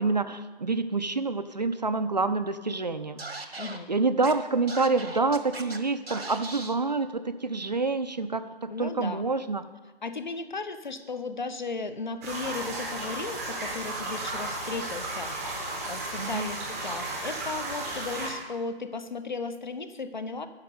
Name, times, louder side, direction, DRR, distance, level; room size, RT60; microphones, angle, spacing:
voice 1, 0.0-9.6 16.2-16.5, right 3 dB, 45° right, 10 dB, 0.5 m, -28 dB
Scratching (performance technique), 3.2-3.8 4.2-4.3 4.7-5.8 6.1-6.8, right 3 dB, 75° right, 1.3 m, -38 dB
voice 2, 3.6-3.9 8.7-9.3 10.0-20.5, left 4 dB, 50° left, 11 dB, 0.8 m, -36 dB
sound 1, 12.2-18.3, right 2 dB, ahead, 0.8 m, -34 dB
9.6 x 6.6 x 8.4 m, 1.3 s
figure-of-eight pair, 150°, 31 cm